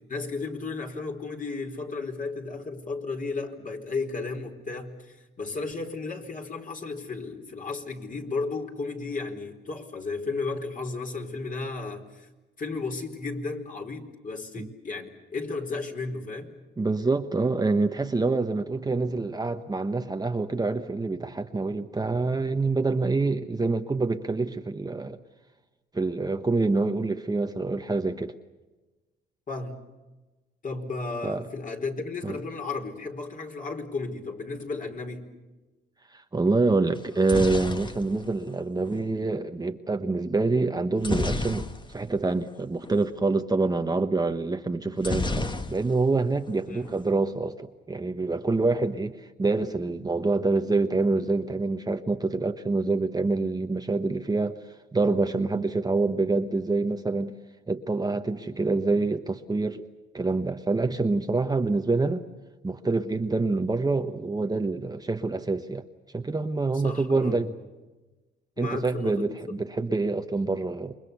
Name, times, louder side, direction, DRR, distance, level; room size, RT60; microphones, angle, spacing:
voice 1, 0.1-12.3 12.6-16.5 29.5-29.8 30.6-35.3 46.7-46.9 66.7-67.5 68.6-69.6, left 3 dB, 40° left, 4.4 m, -34 dB
voice 2, 16.8-25.2 25.9-28.4 31.2-31.5 32.2-32.4 36.1-54.6 54.9-57.3 57.7-59.8 60.1-62.3 62.6-65.9 66.1-67.5 68.6-70.9, right 3 dB, 20° right, 1.2 m, -26 dB
sound 1, 37.0-39.1 41.0-42.2 42.5-42.6 42.9-43.1 45.0-46.2 46.5-47.1, left 2 dB, 25° left, 1.6 m, -31 dB
28.5 x 23.5 x 6.9 m
cardioid pair, 90°, 20 cm